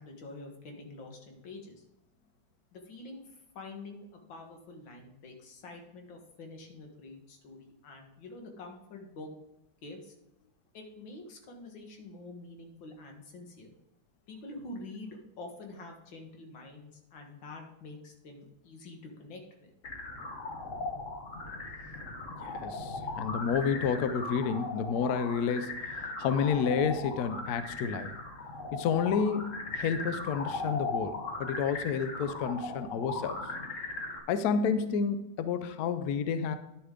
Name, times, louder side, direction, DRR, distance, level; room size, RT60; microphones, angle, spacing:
voice 1, 0.0-1.8 2.7-9.3 9.8-10.1 10.7-13.7 14.3-19.7, left 2 dB, 90° left, 2 dB, 2.2 m, -47 dB
sound 1, 19.8-34.2, left 3 dB, 45° left, 1.4 m, -38 dB
voice 2, 22.4-28.1 28.7-33.4 34.3-36.6, left 6 dB, 65° left, 11 dB, 1.0 m, -30 dB
10.5 x 6.6 x 3.7 m, 0.89 s
omnidirectional pair, 2.0 m